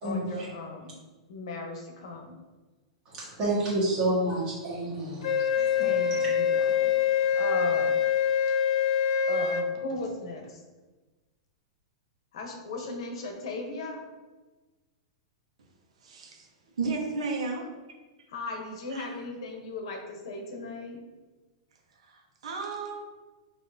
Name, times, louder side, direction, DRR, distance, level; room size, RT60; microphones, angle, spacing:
voice 1, 0.0-0.9 1.3-2.3 5.8-6.9 7.2-8.0 9.3-10.6 12.3-14.1 18.3-21.0, left 2 dB, 60° left, 2 dB, 0.9 m, -37 dB
voice 2, 3.1-5.8, right 1 dB, 25° right, -7 dB, 1.4 m, -29 dB
Wind instrument woodwind instrument, 5.2-9.7, left 8 dB, 80° left, 0.4 m, -25 dB
voice 3, 16.0-16.5 16.8-17.7 18.9-19.1 22.0-23.0, right 4 dB, 80° right, 1 dB, 1.0 m, -33 dB
5.7 x 2.8 x 2.7 m, 1.2 s
supercardioid pair, 170°, 3 cm